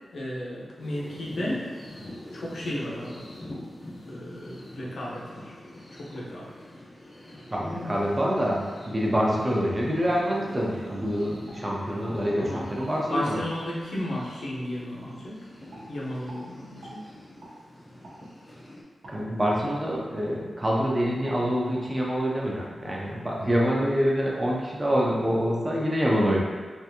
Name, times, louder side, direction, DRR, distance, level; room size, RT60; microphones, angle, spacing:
voice 1, 0.1-1.7 2.3-3.3 4.1-5.5 6.0-6.5 12.4-12.6 12.9-15.4 15.9-17.1, left 1 dB, 80° left, -5 dB, 0.8 m, -34 dB
sound 1, 0.8-18.8, left 1 dB, 40° left, 0.7 m, -44 dB
voice 2, 7.5-13.4 19.1-26.4, equal, 20° right, -3 dB, 0.5 m, -26 dB
sound 2, 10.9-11.0 11.4-12.2 12.7-12.9 13.5-13.6 14.2-14.4 15.0-15.1 15.7-15.8 16.3-16.4 16.8-17.0 17.4-17.5 18.0-18.2 19.0-19.2 19.7-19.9 20.2-20.4 20.7-20.9 21.2-21.4 21.7-21.8, right 1 dB, 80° right, 0.8 m, -47 dB
3.5 x 2.5 x 2.8 m, 1.4 s
wide cardioid pair, 160°, 0 cm